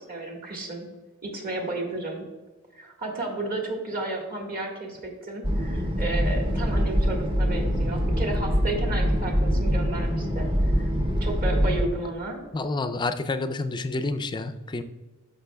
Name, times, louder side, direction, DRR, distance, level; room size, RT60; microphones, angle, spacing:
voice 1, 0.1-0.8 1.2-2.2 2.7-10.5 11.2-12.4, right 2 dB, 40° right, 1 dB, 1.6 m, -32 dB
sound 1, 5.4-11.9, equal, 25° right, 0.7 m, -24 dB
voice 2, 12.5-14.8, left 3 dB, 20° left, 10 dB, 0.4 m, -29 dB
12.5 x 5.6 x 2.2 m, 1.2 s
head